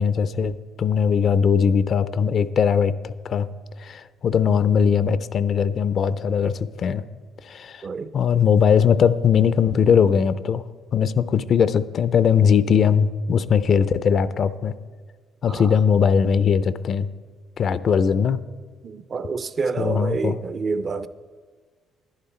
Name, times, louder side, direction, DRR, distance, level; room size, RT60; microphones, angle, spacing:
voice 1, 0.0-3.5 3.8-7.0 7.4-7.9 8.1-10.6 10.9-14.7 15.4-17.1 17.6-18.4 19.8-20.4, left 7 dB, 50° left, 0.4 m, -20 dB
voice 2, 15.5-15.8 18.8-21.1, right 4 dB, 35° right, 0.5 m, -28 dB
11.0 x 10.5 x 4.3 m
cardioid pair, 115°, 0 cm